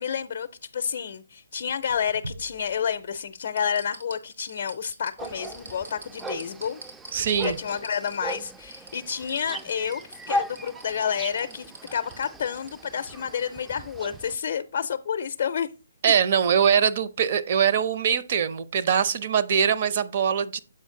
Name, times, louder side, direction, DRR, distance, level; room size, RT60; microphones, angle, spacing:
voice 1, 0.0-6.8 7.4-15.7, left 7 dB, 50° left, 0.5 m, -30 dB
sound 1, 1.7-3.0 3.4-12.7 13.1-13.2, right 2 dB, 80° right, 2.5 m, -44 dB
sound 2, 5.2-14.4, equal, 10° right, 0.3 m, -37 dB
voice 2, 7.1-7.6 16.0-20.6, right 7 dB, 45° right, 0.7 m, -22 dB
7.7 x 5.0 x 3.7 m
hypercardioid pair, 145°, 0 cm